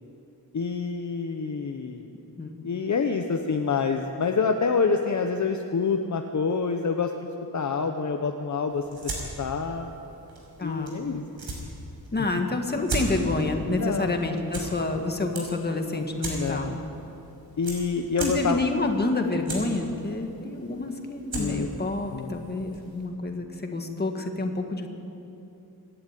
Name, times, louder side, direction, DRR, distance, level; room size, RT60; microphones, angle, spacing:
voice 1, 0.5-2.0 2.6-7.3 7.5-9.1 9.4-9.9 10.6-11.2 13.8-14.2 16.3-16.8 17.6-18.6 21.3-21.7 22.1-22.5, left 5 dB, 50° left, 5 dB, 0.9 m, -27 dB
sound 1, 8.7-23.1, right 2 dB, 80° right, 5.6 m, -38 dB
voice 2, 10.6-10.9 12.1-16.8 18.2-24.9, left 2 dB, 25° left, 4 dB, 1.9 m, -28 dB
25.5 x 11.5 x 9.2 m, 2.8 s
wide cardioid pair, 165°, 37 cm